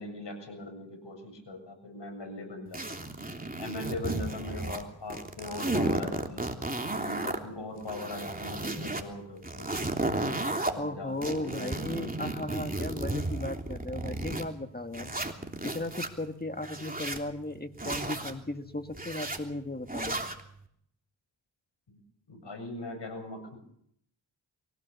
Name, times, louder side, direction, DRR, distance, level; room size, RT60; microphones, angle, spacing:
voice 1, 0.0-3.0 3.6-6.4 6.9-11.7 21.9-22.0 22.3-23.6, left 2 dB, 65° left, 5 dB, 7.8 m, -40 dB
sound 1, 2.7-4.8 5.1-7.4 7.8-9.0 9.4-10.7 11.2-14.5 14.9-16.1 16.6-17.2 17.8-18.3 18.9-19.4 19.9-20.4, right 2 dB, 20° right, 3.2 m, -33 dB
voice 2, 10.8-15.1 15.6-20.2, left 2 dB, 20° left, 7 dB, 1.9 m, -36 dB
23.5 x 17.0 x 7.0 m, 0.69 s
cardioid pair, 45°, 46 cm